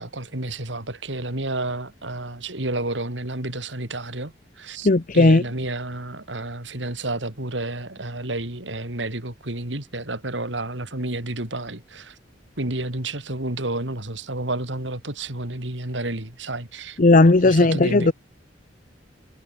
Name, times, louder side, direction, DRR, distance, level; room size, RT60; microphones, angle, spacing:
voice 1, 0.0-4.9 5.1-12.2 12.6-17.0 17.2-18.1, right 2 dB, 80° right, 3.7 m, -30 dB
voice 2, 4.8-5.4 17.0-18.1, left 2 dB, 45° left, 0.8 m, -15 dB
head